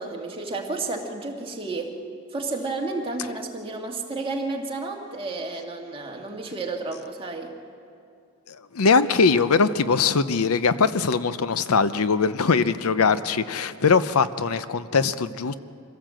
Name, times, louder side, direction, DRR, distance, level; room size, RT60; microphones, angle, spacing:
voice 1, 0.0-1.9 2.3-7.5, right 3 dB, 25° right, 0 dB, 2.1 m, -31 dB
voice 2, 8.5-15.5, left 5 dB, 80° left, 13 dB, 0.7 m, -21 dB
25.0 x 16.5 x 7.7 m, 2.4 s
head